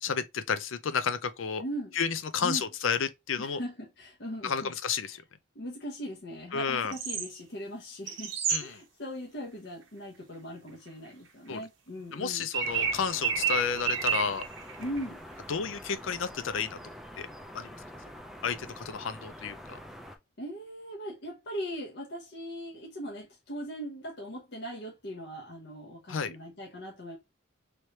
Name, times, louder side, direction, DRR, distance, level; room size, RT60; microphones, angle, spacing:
voice 1, 0.0-1.6 1.9-3.6 4.4-5.2 6.5-6.9 8.5-8.8 11.5-11.6 12.1-14.4 15.5-16.8 17.2-17.3 17.5-17.7 18.4-19.8 26.1-26.3, left 6 dB, 75° left, 0.5 m, -31 dB
voice 2, 1.6-2.0 2.4-2.7 3.4-4.7 5.0-5.2 5.5-12.5 14.8-15.2 20.4-27.2, equal, 55° left, 0.9 m, -39 dB
sound 1, 6.9-7.3 8.1-8.6 12.2-12.3 12.5-15.0 15.5-15.6, right 7 dB, 70° right, 0.8 m, -30 dB
sound 2, 12.6-20.2, equal, ahead, 0.4 m, -46 dB
3.2 x 3.1 x 2.8 m
head